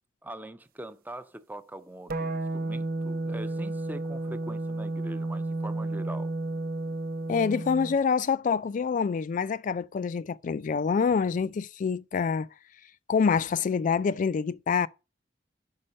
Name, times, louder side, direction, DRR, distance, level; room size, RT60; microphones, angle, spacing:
voice 1, 0.2-6.3, right 1 dB, 10° right, 0.5 m, -43 dB
sound 1, 2.1-7.9, right 2 dB, 50° right, 0.7 m, -32 dB
voice 2, 7.3-12.5 13.1-14.9, left 5 dB, 45° left, 0.3 m, -26 dB
5.5 x 5.3 x 6.3 m
head